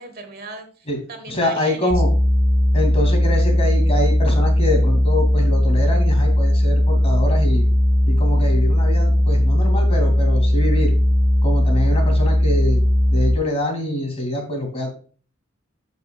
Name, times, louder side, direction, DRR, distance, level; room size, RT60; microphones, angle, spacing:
voice 1, 0.0-2.0, right 4 dB, 50° right, 7 dB, 1.4 m, -37 dB
voice 2, 1.3-2.1 2.7-7.6 8.1-10.9 11.4-12.8 13.1-14.9, left 1 dB, 30° left, 2 dB, 2.4 m, -25 dB
sound 1, 1.9-13.3, left 1 dB, 10° right, 1.4 m, -17 dB
12.5 x 5.4 x 2.4 m, 0.41 s
head